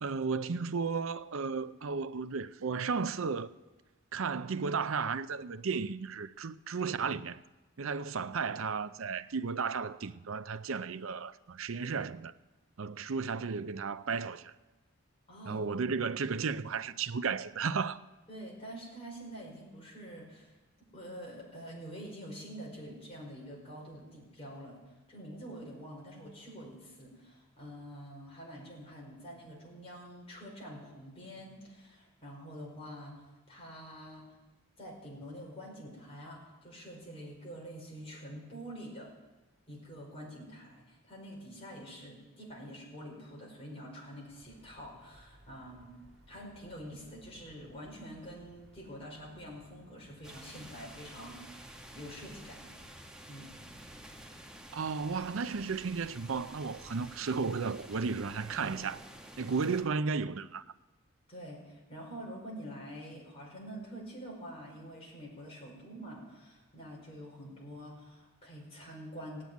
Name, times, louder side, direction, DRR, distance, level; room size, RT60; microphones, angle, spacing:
voice 1, 0.0-3.5 4.1-7.4 7.8-12.3 12.8-14.5 15.5-18.0 54.7-59.0 59.4-60.6, right 5 dB, 70° right, 0.6 m, -34 dB
voice 2, 15.3-15.6 18.3-20.5 20.9-24.8 25.1-34.3 34.8-39.1 39.7-45.9 46.3-52.7 53.3-53.5 59.5-59.7 61.3-69.4, equal, 25° left, 5.1 m, -46 dB
sound 1, 44.2-52.9, equal, 50° right, 2.4 m, -61 dB
sound 2, 50.2-59.8, right 1 dB, 5° right, 1.5 m, -50 dB
16.5 x 8.8 x 9.3 m
head